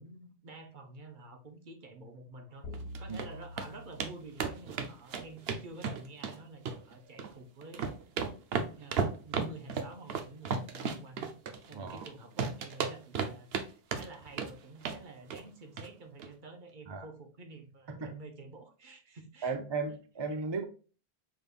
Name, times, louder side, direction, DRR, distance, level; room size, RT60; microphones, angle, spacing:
voice 1, 0.0-2.7 3.0-8.0 8.8-11.3 11.7-19.5, right 2 dB, 55° right, 1.0 m, -49 dB
sound 1, 2.6-5.1, left 1 dB, 75° left, 1.4 m, -46 dB
sound 2, 2.7-3.3 3.6-3.7 4.0-4.1 4.4-6.3 6.6-7.3 7.6-12.1 12.4-13.6 13.9-14.5 14.8-15.0 15.3-15.5 15.8-15.9 16.2-16.3, right 5 dB, 80° right, 0.9 m, -34 dB
voice 2, 11.7-12.1 16.9-17.1 17.9-18.1 19.4-20.6, right 4 dB, 35° right, 0.4 m, -35 dB
5.9 x 3.4 x 2.4 m
omnidirectional pair, 1.0 m